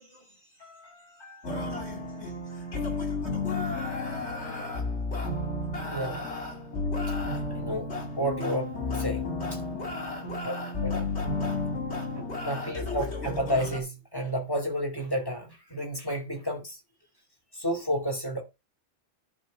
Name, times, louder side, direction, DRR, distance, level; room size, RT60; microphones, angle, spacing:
voice 1, 0.0-3.2 3.9-5.3 10.2-10.6, left 3 dB, 50° left, 7.1 m, -52 dB
sound 1, 1.4-13.8, left 3 dB, 70° left, 2.7 m, -32 dB
voice 2, 5.9-6.3 7.5-7.9 8.2-9.2 9.8-9.9 10.4-10.5 10.8-11.1 12.1-16.8 17.6-18.4, equal, 20° left, 2.5 m, -31 dB
10.5 x 4.4 x 5.2 m
omnidirectional pair, 1.2 m